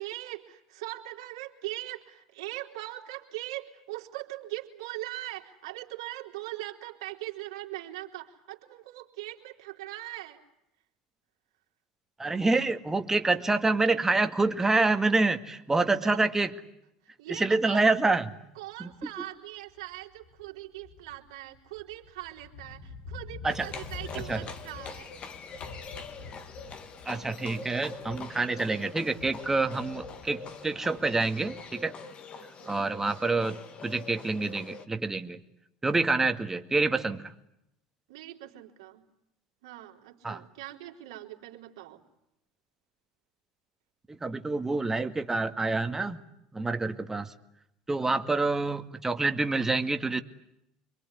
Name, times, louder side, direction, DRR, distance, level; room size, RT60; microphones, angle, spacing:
voice 1, 0.0-10.4 16.0-16.2 17.2-17.9 18.6-25.2 32.6-32.8 38.1-39.0 39.6-42.0, right 16 dB, 80° right, 2 dB, 3.6 m, -41 dB
voice 2, 12.2-16.5 17.3-18.2 18.8-18.9 23.4-23.7 24.3-24.4 27.1-31.9 32.7-35.4 35.8-37.3 40.2-40.4 44.2-46.2 46.5-47.3 47.9-50.2, right 3 dB, 15° right, 8 dB, 2.1 m, -27 dB
sound 1, 18.9-19.2 19.7-28.5 28.8-31.7, left 4 dB, 85° left, 6.1 m, -47 dB
Livestock farm animals working animals, 23.5-34.9, left 4 dB, 45° left, 2.4 m, -44 dB
26.5 x 23.0 x 9.8 m, 0.81 s
hypercardioid pair, 85°, 3 cm